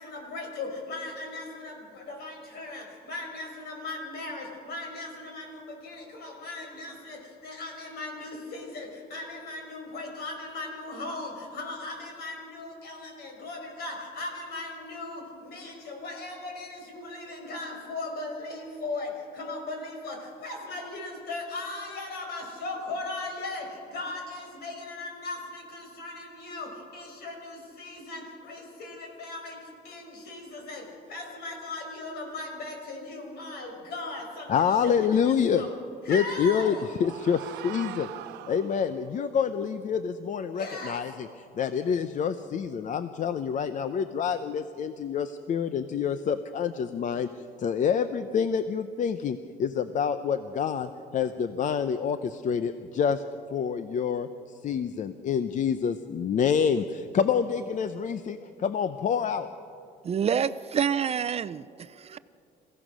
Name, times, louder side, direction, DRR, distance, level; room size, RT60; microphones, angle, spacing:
voice 1, 0.0-35.7 36.0-36.8 40.5-41.0, left 2 dB, 70° left, 2 dB, 5.9 m, -38 dB
voice 2, 34.5-35.7 36.1-38.1 38.5-41.3 41.6-53.2 53.5-54.3 54.6-59.5, left 7 dB, 50° left, 11 dB, 0.7 m, -27 dB
sound 1, 36.3-39.1, right 12 dB, 90° right, 1.0 m, -43 dB
voice 3, 60.0-62.2, right 8 dB, 35° right, 15 dB, 0.5 m, -28 dB
27.5 x 16.0 x 6.3 m, 2.5 s
cardioid pair, 110°, 17 cm